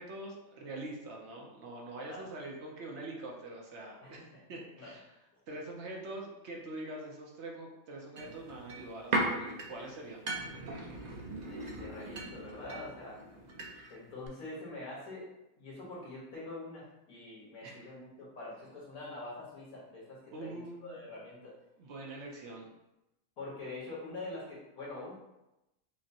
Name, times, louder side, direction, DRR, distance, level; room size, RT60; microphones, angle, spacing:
voice 1, 0.0-4.2 4.5-5.0 5.5-10.2 17.6-17.9 20.3-21.0 21.8-22.7, right 2 dB, 60° right, 0 dB, 0.8 m, -44 dB
voice 2, 4.0-4.4 4.8-4.9 11.4-13.2 13.9-15.3 15.6-21.5 23.4-25.1, left 2 dB, 75° left, -6 dB, 1.9 m, -45 dB
sound 1, 8.2-14.0 14.2-14.3, right 2 dB, 90° right, 0.3 m, -38 dB
5.8 x 2.0 x 2.7 m, 0.92 s
omnidirectional pair, 1.5 m